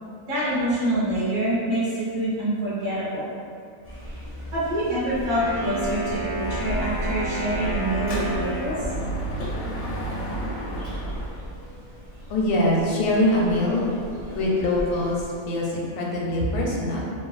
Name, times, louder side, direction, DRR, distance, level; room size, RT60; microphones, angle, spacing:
voice 1, 0.3-3.3 4.5-8.7, right 1 dB, 65° right, -10 dB, 1.3 m, -26 dB
sound 1, 3.8-15.3, equal, 15° right, 0.5 m, -37 dB
Wind instrument woodwind instrument, 5.2-9.1, equal, 45° right, 0.8 m, -32 dB
Dog / Motorcycle, 6.4-11.4, right 1 dB, 65° left, 0.6 m, -31 dB
voice 2, 12.3-13.9 14.3-17.1, left 1 dB, 80° left, -3 dB, 1.0 m, -23 dB
3.2 x 2.2 x 2.4 m, 2.3 s
omnidirectional pair, 1.5 m